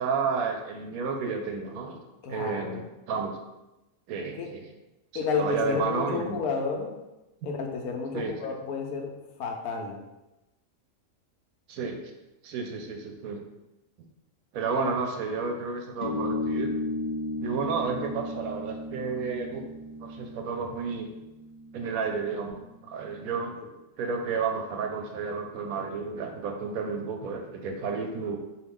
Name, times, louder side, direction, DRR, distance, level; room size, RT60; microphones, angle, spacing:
voice 1, 0.0-2.0 2.3-2.8 3.1-3.4 4.1-4.7 5.4-6.4 8.1-8.3 11.7-12.0 12.4-13.4 14.5-16.7 17.4-19.6 20.0-21.1 21.7-23.6 24.0-28.4, right 5 dB, 80° right, 3 dB, 1.0 m, -31 dB
voice 2, 2.2-2.8 4.3-4.5 5.1-6.9 7.4-9.1 9.4-10.0 14.8-14.9, left 5 dB, 90° left, 1 dB, 1.1 m, -31 dB
sound 1, 16.0-23.0, left 2 dB, 40° left, 0.4 m, -35 dB
3.8 x 2.7 x 3.5 m, 0.98 s
omnidirectional pair, 1.5 m